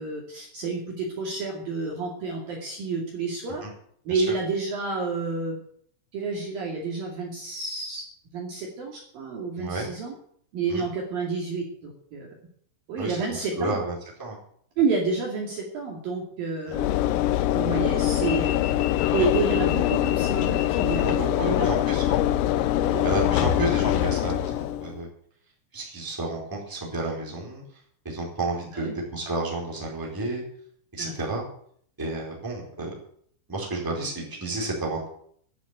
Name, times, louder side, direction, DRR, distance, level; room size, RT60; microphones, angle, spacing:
voice 1, 0.0-3.6 4.1-5.6 6.1-8.0 8.3-10.1 10.5-12.3 12.9-13.8 14.8-17.2 17.5-18.6 19.1-21.7 22.8-23.1 28.7-28.9 31.0-31.1, right 4 dB, 50° right, -1 dB, 3.6 m, -29 dB
voice 2, 9.6-9.9 10.7-10.9 13.0-14.4 19.1-19.3 21.0-22.2 23.0-25.1 25.7-27.6 28.0-30.4 30.9-31.4 32.0-32.9 33.5-35.1, right 2 dB, 5° right, -3 dB, 3.7 m, -31 dB
Train / Engine / Alarm, 16.7-25.0, left 12 dB, 85° left, 3.3 m, -23 dB
12.0 x 10.0 x 9.0 m, 0.64 s
omnidirectional pair, 5.9 m